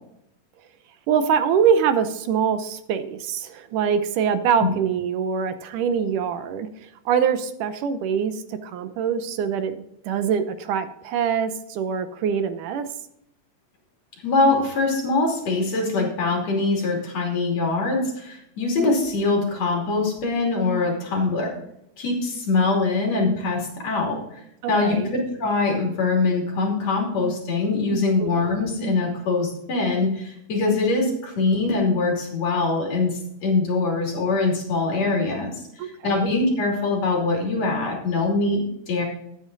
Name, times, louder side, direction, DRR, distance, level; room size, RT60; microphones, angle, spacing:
voice 1, 1.1-9.8 10.0-12.9 24.6-25.1 28.2-28.3 35.8-36.3, right 7 dB, 75° right, 10 dB, 2.3 m, -24 dB
voice 2, 14.2-21.5 22.0-24.4 24.7-35.5 35.8-39.0, left 3 dB, 50° left, 0 dB, 3.9 m, -23 dB
13.5 x 9.1 x 4.0 m, 0.78 s
omnidirectional pair, 3.8 m